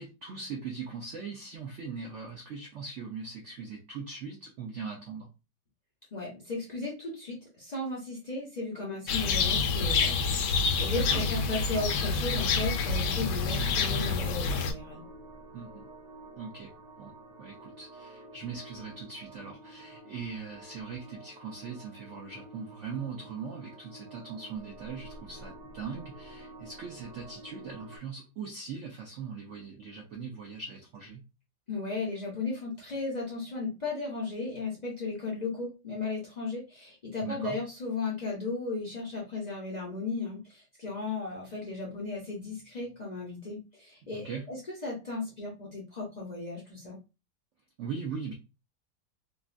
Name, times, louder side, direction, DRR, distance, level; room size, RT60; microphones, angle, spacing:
voice 1, 0.0-5.3 10.9-11.2 15.5-15.9 16.4-16.7 17.0-17.1 17.4-31.2 37.2-37.6 44.1-44.4 47.8-48.3, right 5 dB, 80° right, 1 dB, 0.6 m, -40 dB
voice 2, 6.1-15.0 31.7-47.0, left 3 dB, 55° left, -4 dB, 0.4 m, -35 dB
sound 1, 9.1-14.7, left 4 dB, 75° left, 1.1 m, -27 dB
sound 2, 12.5-28.0, right 2 dB, 65° right, 1.7 m, -49 dB
3.7 x 2.1 x 2.4 m, 0.29 s
omnidirectional pair, 1.9 m